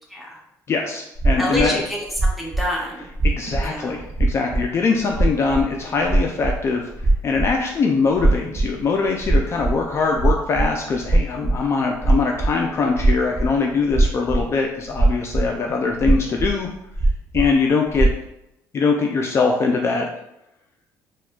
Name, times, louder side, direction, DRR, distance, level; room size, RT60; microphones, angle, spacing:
voice 1, 0.7-1.8 3.2-6.9 7.2-16.7 17.3-18.1 18.7-20.1, left 4 dB, 35° left, 1 dB, 0.3 m, -22 dB
sound 1, 1.1-1.6 2.1-2.6 3.1-3.6 3.9-4.6 4.9-7.6 8.1-8.8 9.0-12.7 12.9-13.5 13.9-14.5 14.9-15.5 16.0-16.5 16.9-17.5 17.9-18.1, right 2 dB, 35° right, 0.7 m, -19 dB
voice 2, 1.4-3.1 3.6-3.9, left 1 dB, ahead, -3 dB, 0.8 m, -27 dB
4.1 x 2.2 x 2.3 m, 0.84 s
cardioid pair, 110°, 7 cm